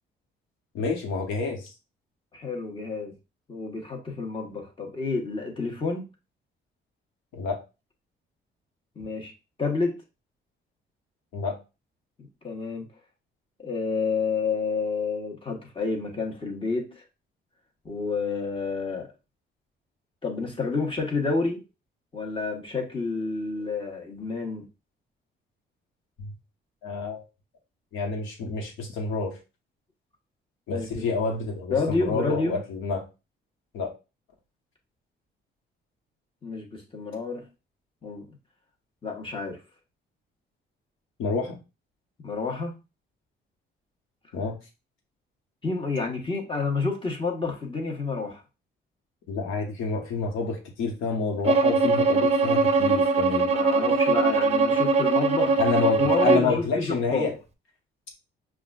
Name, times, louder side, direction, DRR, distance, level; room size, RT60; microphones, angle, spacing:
voice 1, 0.7-1.7 7.3-7.6 11.3-11.6 26.2-26.3 26.8-27.2 27.9-29.4 30.7-33.0 33.7-33.9 41.2-41.6 44.3-44.6 49.3-53.5 55.6-57.3, left 4 dB, 90° left, 1.2 m, -28 dB
voice 2, 2.3-3.1 3.5-6.0 8.9-9.3 9.6-10.0 12.4-12.9 13.6-16.9 17.8-19.1 20.2-21.6 22.1-24.7 30.7-31.0 31.7-32.6 36.4-37.4 38.0-38.3 39.0-39.6 42.2-42.7 45.6-48.4 53.5-55.6 56.0-57.3, left 4 dB, 25° left, 1.2 m, -29 dB
Bowed string instrument, 51.4-56.5, right 3 dB, 35° right, 0.5 m, -21 dB
5.8 x 2.4 x 2.4 m
cardioid pair, 90°, 20 cm